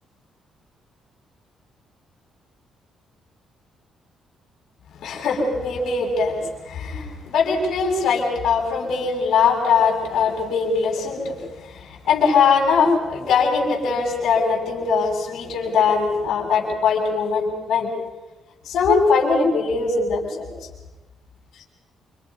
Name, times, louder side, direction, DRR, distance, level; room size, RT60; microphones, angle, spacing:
voice 1, 5.0-17.9 18.7-20.5, left 5 dB, 75° left, -1 dB, 7.4 m, -21 dB
28.5 x 26.0 x 5.6 m, 1.1 s
cardioid pair, 90°, 0 cm